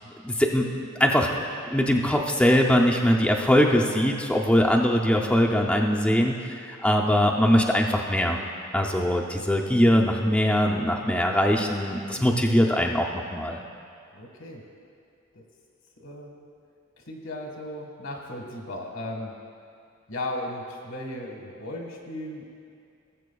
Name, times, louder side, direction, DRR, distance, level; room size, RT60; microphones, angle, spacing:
voice 1, 0.2-1.3 1.7-8.4 8.7-13.6, equal, 5° left, -1 dB, 0.5 m, -22 dB
voice 2, 14.1-14.6 15.3-15.4 16.0-16.3 17.0-19.3 20.1-22.5, left 1 dB, 80° left, 1 dB, 1.4 m, -36 dB
18.5 x 7.4 x 2.3 m, 2.4 s
head